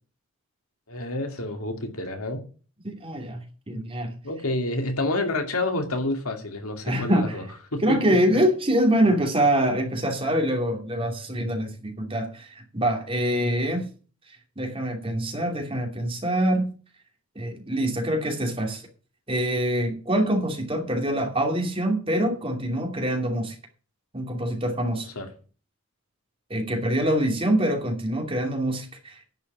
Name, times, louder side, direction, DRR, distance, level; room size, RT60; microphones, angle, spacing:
voice 1, 0.9-2.4 3.7-3.8 4.2-7.4 7.7-8.2 25.2-25.3, left 2 dB, 85° left, 2.5 m, -29 dB
voice 2, 2.8-4.1 6.8-7.4 7.8-13.9 14.6-16.7 17.3-18.8 19.3-23.6 24.1-25.1 26.5-29.4, right 1 dB, 25° right, 2.8 m, -25 dB
11.0 x 5.7 x 8.6 m
head